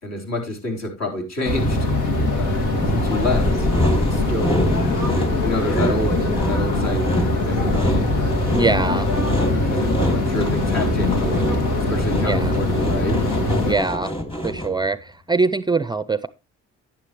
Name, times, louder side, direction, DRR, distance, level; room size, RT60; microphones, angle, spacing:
voice 1, 0.0-1.9 2.3-2.6 2.9-3.7 4.0-4.7 5.4-8.2 8.8-9.2 9.7-11.4 11.9-13.2, left 1 dB, 60° left, 2 dB, 4.0 m, -28 dB
sound 1, 1.4-13.8, left 2 dB, 90° left, 2.4 m, -22 dB
Sawing, 2.8-14.9, equal, 15° left, 2.5 m, -26 dB
voice 2, 8.5-9.1 12.2-12.5 13.7-14.1 14.4-16.3, right 3 dB, 15° right, 14 dB, 0.4 m, -22 dB
10.5 x 9.8 x 3.1 m, 0.25 s
cardioid pair, 90°, 30 cm